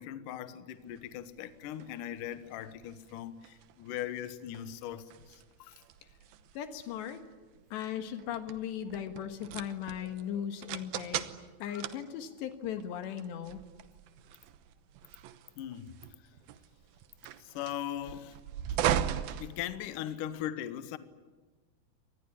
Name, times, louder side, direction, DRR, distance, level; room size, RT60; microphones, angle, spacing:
voice 1, 0.0-5.8 11.7-11.8 15.6-16.0 17.4-18.4 18.7-18.9 19.3-21.0, left 11 dB, 90° left, 1.8 m, -40 dB
sound 1, 0.9-20.3, right 10 dB, 85° right, 2.1 m, -39 dB
voice 2, 6.6-7.2 7.7-11.3 11.6-13.6, left 9 dB, 70° left, 3.5 m, -38 dB
26.0 x 20.0 x 9.9 m
omnidirectional pair, 5.6 m